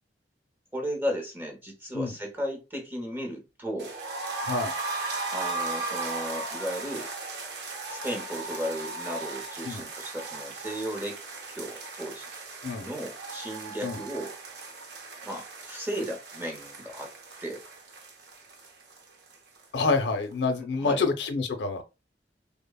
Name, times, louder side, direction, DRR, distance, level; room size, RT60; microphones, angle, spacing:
voice 1, 0.7-3.9 5.3-7.1 7.9-11.2 11.5-12.3 12.8-14.3 15.2-17.1 17.4-17.6 20.8-21.0, equal, 10° right, 0.7 m, -35 dB
sound 1, 3.8-19.6 19.9-20.0 20.3-20.4, right 3 dB, 65° right, 0.6 m, -37 dB
voice 2, 19.7-21.8, left 4 dB, 70° left, 0.5 m, -27 dB
3.1 x 2.0 x 2.2 m
head